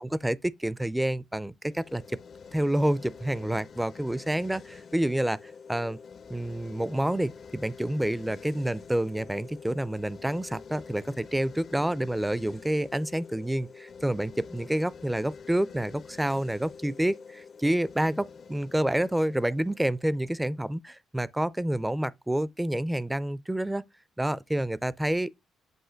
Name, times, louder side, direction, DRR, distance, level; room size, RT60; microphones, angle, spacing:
voice 1, 0.0-2.0 2.5-5.4 5.7-6.0 6.3-23.8 24.2-25.4, right 1 dB, 5° right, 0.4 m, -28 dB
sound 1, 1.7-20.8, left 6 dB, 50° left, 0.5 m, -47 dB
8.0 x 2.8 x 5.6 m
cardioid pair, 95°, 0 cm